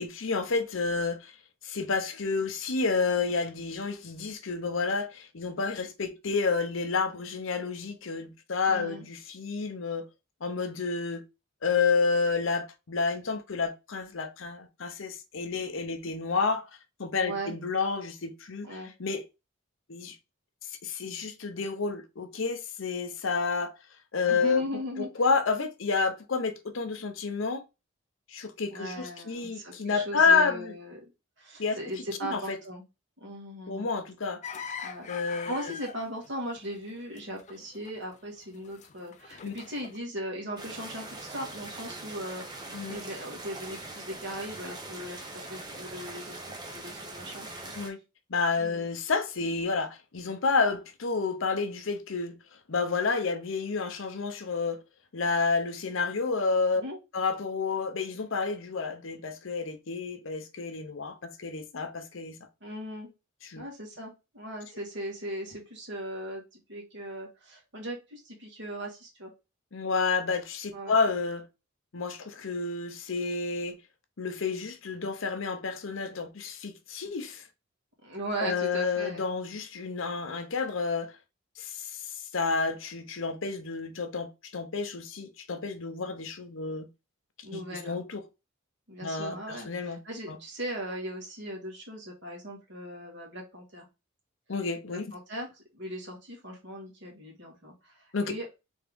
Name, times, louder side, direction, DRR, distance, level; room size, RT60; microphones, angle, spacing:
voice 1, 0.0-1.3 1.6-10.1 10.4-11.2 11.6-16.7 17.0-19.2 19.9-20.2 20.8-23.7 24.1-24.6 25.0-27.6 28.3-30.7 31.6-31.8 32.2-32.6 33.7-34.4 35.1-35.5 39.4-39.5 42.7-43.0 47.8-48.0 48.3-52.4 52.7-54.8 55.1-56.8 57.1-62.4 63.4-63.6 69.7-71.4 71.9-73.8 74.2-77.4 78.4-81.1 81.6-82.0 82.3-86.9 87.5-88.2 89.0-90.0 90.3-90.4 94.5-95.1 98.1-98.3, left 4 dB, 65° left, 0.7 m, -30 dB
voice 2, 8.7-9.1 17.2-17.5 18.6-18.9 24.3-25.1 28.7-31.0 31.4-32.8 33.2-33.9 34.8-42.4 42.9-46.3 46.6-47.7 48.6-48.9 56.8-57.0 62.6-63.1 63.6-69.3 70.7-70.9 78.0-79.3 87.4-88.0 88.9-93.9 94.9-98.5, equal, 55° right, 1.7 m, -38 dB
sound 1, 34.4-38.4 38.6-40.0, left 6 dB, 35° left, 0.3 m, -42 dB
sound 2, 40.6-47.9, right 2 dB, 20° right, 0.8 m, -42 dB
3.6 x 3.5 x 3.5 m
head